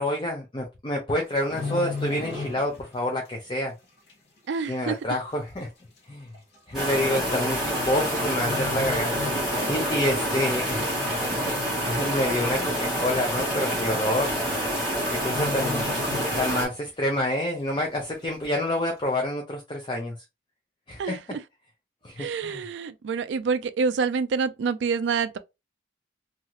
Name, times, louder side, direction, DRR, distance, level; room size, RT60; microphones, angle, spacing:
voice 1, 0.0-3.7 4.7-5.7 6.1-6.3 6.7-9.1 9.7-11.0 11.4-14.4 15.1-15.8 16.3-20.1 20.9-21.2 22.0-22.6, left 1 dB, 25° left, 0.5 m, -28 dB
sound 1, 1.2-3.0 3.3-3.5 4.1-4.2 5.1-5.2 5.4-5.5 6.3-6.6 7.7-8.1 8.3-9.9 10.3-10.5 11.0-11.5 11.8-11.9 12.2-12.3 12.7-12.8 13.7-13.8 14.1-14.4 14.7-14.8 15.2-16.8 17.2-17.3, left 3 dB, 55° left, 1.0 m, -35 dB
voice 2, 4.5-5.0 21.0-21.4 22.2-25.4, right 5 dB, 70° right, 0.3 m, -27 dB
sound 2, 6.7-16.7, equal, ahead, 1.4 m, -27 dB
2.7 x 2.4 x 2.9 m
head